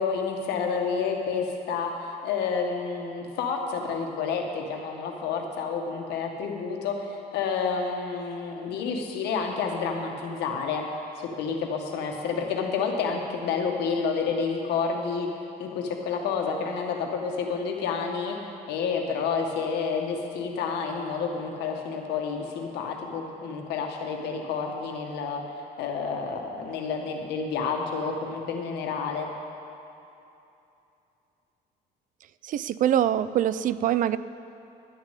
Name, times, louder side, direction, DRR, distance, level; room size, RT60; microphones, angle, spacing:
voice 1, 0.0-10.9 11.2-15.3 15.6-25.4 25.8-29.3, left 5 dB, 80° left, 2 dB, 1.4 m, -29 dB
voice 2, 32.4-34.2, right 11 dB, 50° right, 15 dB, 0.4 m, -24 dB
10.5 x 6.4 x 9.0 m, 2.8 s
cardioid pair, 110°, 17 cm